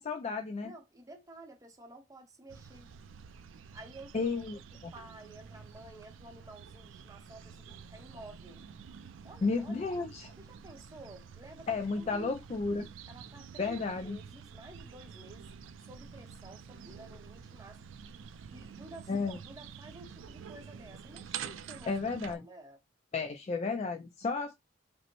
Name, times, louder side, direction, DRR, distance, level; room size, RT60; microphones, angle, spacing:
voice 1, 0.0-0.7 4.1-4.9 9.4-10.3 11.7-12.9 13.6-14.2 19.1-19.4 21.9-22.4 23.1-24.5, left 4 dB, 35° left, 0.3 m, -33 dB
voice 2, 0.6-2.9 3.7-4.3 4.9-8.6 9.2-9.8 10.4-12.4 12.7-12.8 13.1-13.8 14.0-15.5 15.8-17.8 18.5-21.9 22.2-22.8, right 2 dB, 20° right, 0.7 m, -52 dB
sound 1, 2.5-22.4, right 7 dB, 90° right, 0.4 m, -48 dB
5.1 x 2.1 x 2.9 m
head